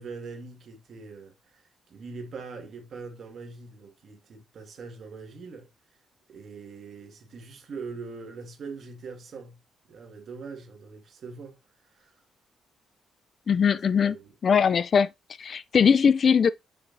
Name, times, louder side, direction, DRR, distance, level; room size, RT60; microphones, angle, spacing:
voice 1, 0.0-5.7 6.3-11.6 11.9-12.2 13.7-14.6, right 4 dB, 60° right, 2.1 m, -42 dB
voice 2, 13.5-14.2 14.4-15.1 15.4-16.5, left 6 dB, 50° left, 0.4 m, -20 dB
5.9 x 5.8 x 2.7 m
cardioid pair, 90°, 0 cm